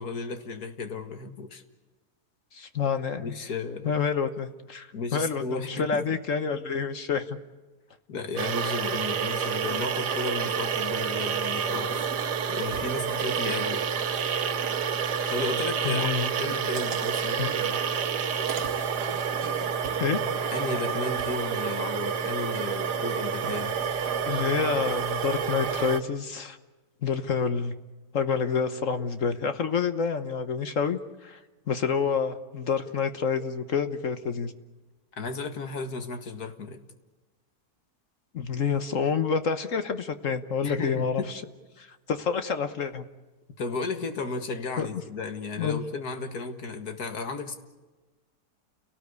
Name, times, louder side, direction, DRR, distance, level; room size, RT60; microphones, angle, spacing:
voice 1, 0.0-1.6 3.2-3.9 4.9-6.1 8.1-12.0 12.5-13.8 15.3-16.1 16.4-17.8 20.5-23.7 35.2-36.8 40.6-41.3 43.6-47.6, left 4 dB, 70° left, 7 dB, 2.3 m, -34 dB
voice 2, 2.5-3.3 3.8-7.4 15.8-16.3 17.3-17.6 20.0-20.2 24.3-26.6 27.0-27.7 28.1-31.4 31.7-34.5 38.3-41.4 41.8-43.0 44.8-44.9 45.6-45.8, left 6 dB, 55° left, 10 dB, 1.4 m, -28 dB
sound 1, 8.4-26.0, right 7 dB, 90° right, 1.7 m, -29 dB
29.5 x 18.5 x 8.2 m, 1.2 s
omnidirectional pair, 1.7 m